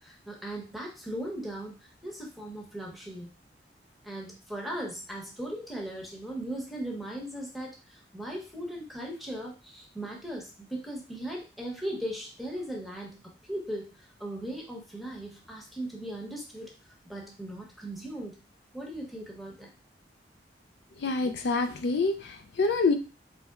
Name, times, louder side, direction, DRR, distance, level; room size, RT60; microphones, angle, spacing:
voice 1, 0.0-3.3 4.0-13.2 13.5-16.7 17.0-18.4 18.7-19.7, right 1 dB, ahead, -1 dB, 0.9 m, -38 dB
voice 2, 21.0-23.0, left 3 dB, 65° left, 7 dB, 0.4 m, -26 dB
4.1 x 3.1 x 2.3 m, 0.32 s
head